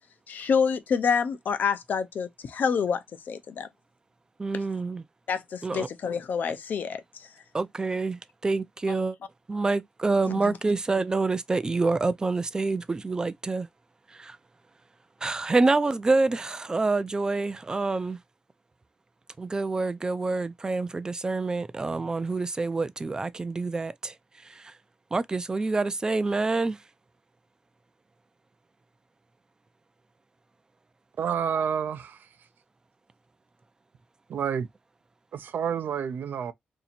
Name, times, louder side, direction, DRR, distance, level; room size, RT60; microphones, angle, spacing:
voice 1, 0.3-3.7 5.3-7.3 10.4-10.6, left 6 dB, 70° left, 0.5 m, -27 dB
voice 2, 4.4-5.0 5.6-5.9 7.5-9.2 9.5-13.7 14.1-14.4 15.2-18.2 19.4-24.1 24.4-24.7 25.1-26.8, right 3 dB, 20° right, 0.3 m, -27 dB
voice 3, 31.2-32.3 34.3-34.7 35.3-36.5, right 7 dB, 80° right, 0.5 m, -29 dB
2.8 x 2.7 x 4.2 m
wide cardioid pair, 145°, 3 cm